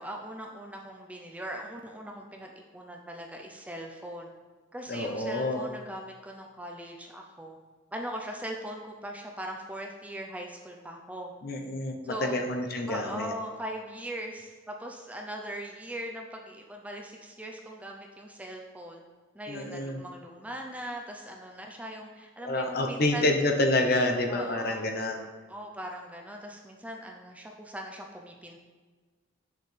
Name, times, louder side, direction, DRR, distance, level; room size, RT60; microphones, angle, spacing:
voice 1, 0.0-4.3 4.7-7.6 7.9-11.3 12.0-12.4 12.9-19.0 19.3-23.3 24.3-24.9 25.5-28.6, right 1 dB, 5° right, 1 dB, 0.5 m, -40 dB
voice 2, 4.9-5.7 11.4-13.3 19.5-20.0 22.4-25.2, left 1 dB, 50° left, 3 dB, 0.8 m, -28 dB
8.9 x 6.5 x 3.3 m, 1.4 s
head